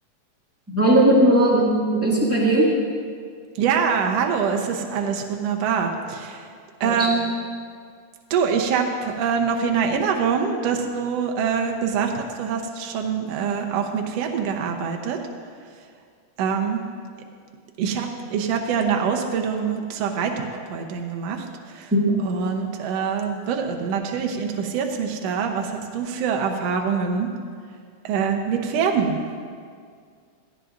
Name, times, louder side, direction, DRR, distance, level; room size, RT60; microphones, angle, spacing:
voice 1, 0.7-2.7 6.8-7.1 21.9-22.1, right 1 dB, 5° right, -6 dB, 1.2 m, -18 dB
voice 2, 3.6-6.4 6.8-7.3 8.3-15.2 16.4-16.8 17.8-21.5 21.7-21.9 22.2-27.3 28.0-29.2, right 6 dB, 65° right, 3 dB, 1.7 m, -24 dB
17.0 x 13.5 x 2.6 m, 2.1 s
omnidirectional pair, 3.8 m